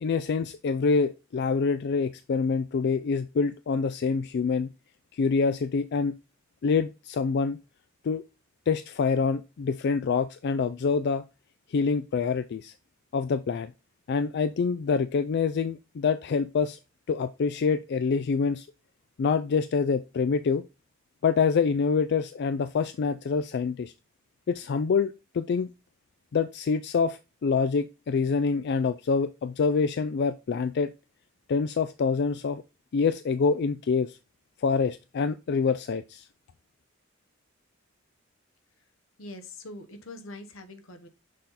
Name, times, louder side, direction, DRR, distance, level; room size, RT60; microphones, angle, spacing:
voice 1, 0.0-4.7 5.1-6.2 6.6-7.6 8.0-8.2 8.7-11.2 11.7-12.7 13.1-13.7 14.1-16.8 17.1-18.7 19.2-20.6 21.2-23.9 24.5-25.7 26.3-30.9 31.5-32.6 32.9-34.2 34.6-36.3, left 5 dB, 55° left, 11 dB, 0.4 m, -26 dB
voice 2, 39.2-41.1, left 2 dB, 80° left, 8 dB, 1.0 m, -43 dB
6.5 x 4.0 x 4.0 m, 0.27 s
head